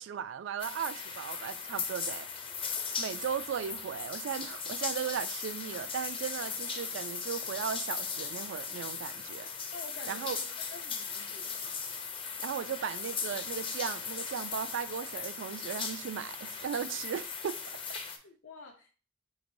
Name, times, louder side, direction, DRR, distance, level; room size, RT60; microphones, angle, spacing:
voice 1, 0.0-2.3 3.0-9.5 10.1-10.4 12.4-17.6 17.9-18.0, right 8 dB, 65° right, 0.3 m, -37 dB
sound 1, 0.6-18.2, left 5 dB, 25° left, 0.5 m, -38 dB
voice 2, 9.7-10.5 10.7-11.7 18.1-18.9, left 3 dB, 75° left, 0.5 m, -49 dB
5.1 x 3.1 x 2.5 m
head